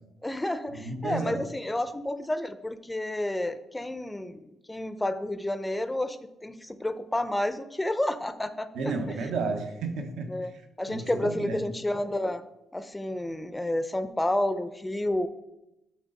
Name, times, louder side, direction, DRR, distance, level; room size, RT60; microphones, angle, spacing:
voice 1, 0.2-9.2 10.3-10.5 10.8-12.4 12.7-15.3, left 1 dB, 10° left, 12 dB, 0.5 m, -30 dB
voice 2, 0.7-1.4 8.7-10.4 10.9-11.6, right 3 dB, 80° right, 5 dB, 0.8 m, -32 dB
6.3 x 3.9 x 5.1 m, 0.90 s
cardioid pair, 90°, 0 cm